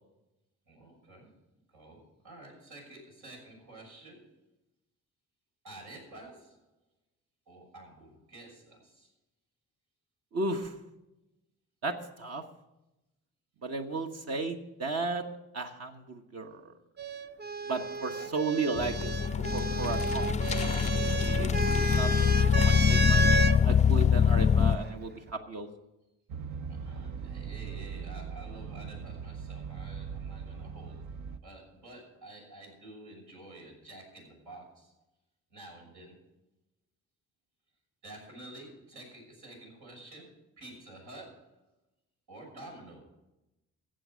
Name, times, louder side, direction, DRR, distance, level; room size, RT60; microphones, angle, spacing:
voice 1, 0.7-1.3 1.7-4.3 5.6-6.6 7.5-9.1 17.8-18.3 26.7-34.9 35.5-36.2 38.0-41.5 42.3-43.0, right 1 dB, 85° right, -1 dB, 6.4 m, -50 dB
voice 2, 10.3-10.7 11.8-12.4 13.6-15.2 15.5-16.6 17.7-19.1 19.5-23.3 23.6-25.7, right 3 dB, 55° right, 4 dB, 1.3 m, -35 dB
sound 1, 17.0-23.6 24.7-25.3, right 3 dB, 35° right, 0.7 m, -32 dB
sound 2, 18.8-24.8, left 7 dB, 25° left, 0.4 m, -24 dB
sound 3, 26.3-31.4, right 6 dB, 70° right, 0.9 m, -40 dB
15.5 x 7.7 x 6.3 m, 0.95 s
cardioid pair, 90°, 30 cm